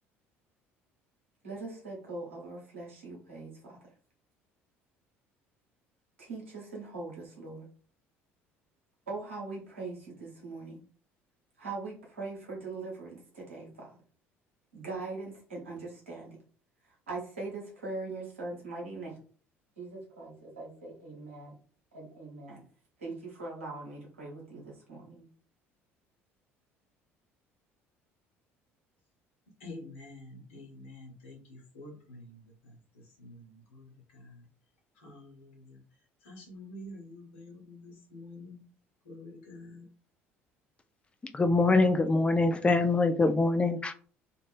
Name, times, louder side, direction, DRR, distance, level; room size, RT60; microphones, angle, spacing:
voice 1, 1.4-3.8 6.2-7.7 9.1-10.8 11.6-14.0 14.7-16.4 17.1-19.2 19.8-21.5 21.9-22.6 23.0-25.3, right 3 dB, 75° right, 1.1 m, -41 dB
voice 2, 29.6-32.4 33.2-33.5 33.7-33.8 34.1-34.3 35.0-35.8 36.2-38.6 39.0-39.8, left 2 dB, 70° left, 1.1 m, -47 dB
voice 3, 41.3-43.9, left 3 dB, 15° left, 0.4 m, -24 dB
2.5 x 2.5 x 3.3 m
figure-of-eight pair, 55°, 7 cm